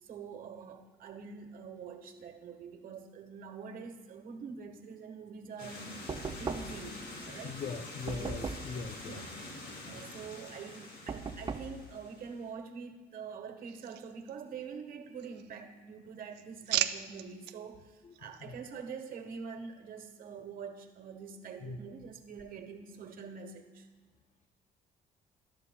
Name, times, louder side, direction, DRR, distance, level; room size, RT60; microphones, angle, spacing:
voice 1, 0.0-6.0 6.3-7.9 8.1-8.5 9.0-9.3 9.8-23.9, right 6 dB, 60° right, 6 dB, 1.3 m, -45 dB
sound 1, 5.6-12.5, left 2 dB, 65° left, 2.7 m, -46 dB
Knock, 6.1-6.9 8.1-8.8 11.1-11.8, right 4 dB, 25° right, 0.5 m, -38 dB
voice 2, 7.4-9.2 18.0-18.1 18.5-18.6 21.6-21.8, left 5 dB, 40° left, 8 dB, 0.5 m, -40 dB
sound 2, 13.7-14.8 15.1-15.8 16.1-17.6 18.1-18.4, right 13 dB, 85° right, 0.5 m, -37 dB
14.0 x 12.0 x 2.3 m, 1.3 s
cardioid pair, 110°, 17 cm